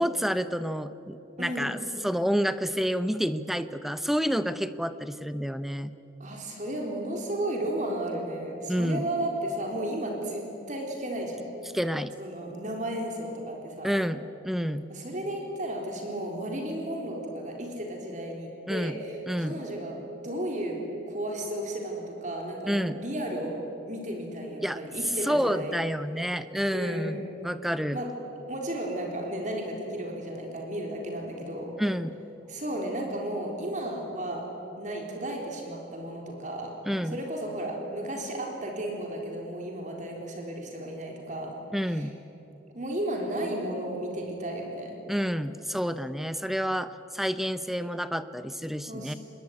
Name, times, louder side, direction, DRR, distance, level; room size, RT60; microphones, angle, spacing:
voice 1, 0.0-5.9 8.7-9.0 11.7-12.1 13.8-14.9 18.7-19.0 19.3-19.6 22.7-23.0 24.6-24.8 25.2-28.0 31.8-32.2 36.9-37.2 41.7-42.2 45.1-49.1, equal, ahead, 12 dB, 0.7 m, -29 dB
voice 2, 1.4-1.8 6.2-11.4 12.2-14.0 14.9-20.0 20.2-23.6 23.9-25.8 26.7-27.2 27.9-28.1 28.5-31.7 32.5-34.5 34.8-36.7 37.1-41.6 41.8-42.1 42.7-45.0 48.9-49.2, right 1 dB, 40° right, 1 dB, 3.8 m, -34 dB
26.0 x 21.0 x 9.8 m, 3.0 s
head